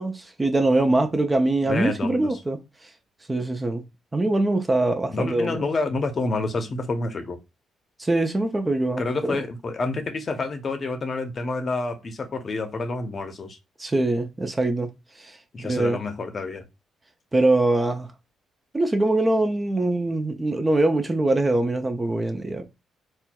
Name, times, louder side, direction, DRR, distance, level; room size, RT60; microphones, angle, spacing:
voice 1, 0.0-2.6 3.3-3.8 4.1-5.6 8.0-9.4 13.8-14.9 15.2-16.0 17.3-18.1 18.7-22.7, right 2 dB, 20° right, 0.4 m, -23 dB
voice 2, 1.6-2.4 5.1-7.4 9.0-13.6 15.5-16.6, left 3 dB, 40° left, 0.6 m, -28 dB
4.2 x 2.2 x 2.2 m
cardioid pair, 90°, 0 cm